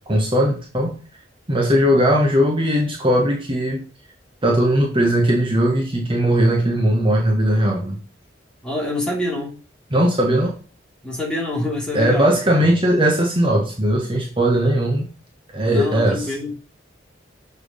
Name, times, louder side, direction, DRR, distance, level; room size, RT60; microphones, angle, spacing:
voice 1, 0.1-0.9 1.5-3.8 4.4-8.0 9.9-10.5 11.9-15.1 15.5-16.3, equal, 30° right, 1.5 m, -18 dB
voice 2, 8.6-9.6 11.0-12.4 15.6-16.5, left 1 dB, 5° left, 2.9 m, -26 dB
7.1 x 4.6 x 5.1 m
head